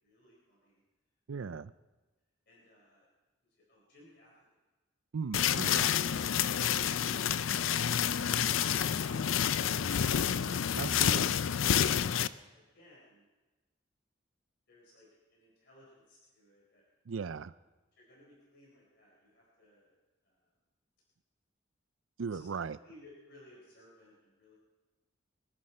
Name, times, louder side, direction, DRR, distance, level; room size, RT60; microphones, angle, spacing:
voice 1, 0.0-0.8 1.4-1.6 2.5-3.1 3.5-4.3 12.5-13.2 14.7-16.8 17.1-17.2 18.0-20.0 20.2-20.4 22.3-24.5, left 2 dB, 55° left, -4 dB, 4.1 m, -59 dB
voice 2, 1.3-1.7 5.1-6.0 10.8-11.2 17.1-17.5 22.2-22.8, right 5 dB, 85° right, 17 dB, 0.5 m, -37 dB
sound 1, 5.3-12.3, left 9 dB, 80° left, 0.5 m, -29 dB
24.5 x 11.0 x 4.4 m, 1.2 s
head